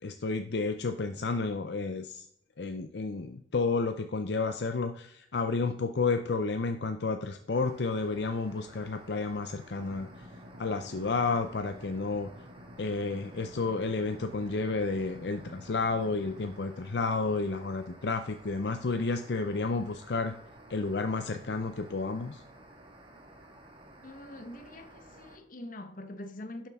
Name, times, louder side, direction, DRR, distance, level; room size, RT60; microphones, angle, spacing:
voice 1, 0.0-2.2 2.6-10.1 10.6-12.3 12.8-20.3 20.7-22.4, left 3 dB, 70° left, 0.6 m, -31 dB
sound 1, 7.5-25.4, right 1 dB, 30° right, 1.6 m, -53 dB
sound 2, 9.8-16.5, left 1 dB, 80° right, 2.5 m, -51 dB
voice 2, 24.0-26.7, left 1 dB, 50° left, 1.1 m, -44 dB
11.5 x 7.3 x 3.6 m
head